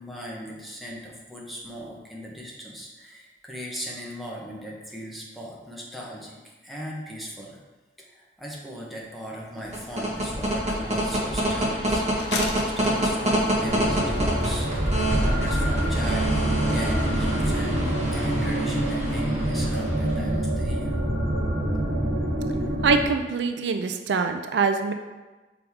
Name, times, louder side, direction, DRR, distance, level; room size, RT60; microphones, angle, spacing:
voice 1, 0.0-7.6 8.0-12.0 12.4-14.7 15.1-21.0, equal, ahead, -4 dB, 1.1 m, -38 dB
sound 1, 9.6-20.4, right 1 dB, 40° right, 1.2 m, -27 dB
sound 2, 10.7-10.8 11.2-11.3 12.2-13.6 14.2-15.2 15.5-15.6 15.8-16.1 16.4-16.5 16.7-16.8, left 4 dB, 70° left, 0.7 m, -35 dB
sound 3, 13.6-23.1, right 1 dB, 55° right, 1.0 m, -26 dB
voice 2, 22.8-24.9, right 5 dB, 75° right, 7 dB, 0.4 m, -24 dB
6.2 x 4.7 x 3.6 m, 1.2 s
head